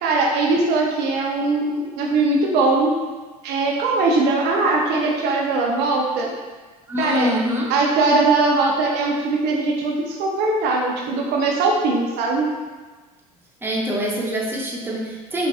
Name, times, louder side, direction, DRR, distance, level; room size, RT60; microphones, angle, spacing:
voice 1, 0.0-2.9 3.4-6.3 7.0-7.3 7.7-12.5, right 3 dB, 60° right, -1 dB, 0.6 m, -20 dB
voice 2, 6.9-7.7 13.6-15.5, equal, 10° right, -3 dB, 0.7 m, -24 dB
4.9 x 2.3 x 2.5 m, 1.3 s
hypercardioid pair, 75°, 19 cm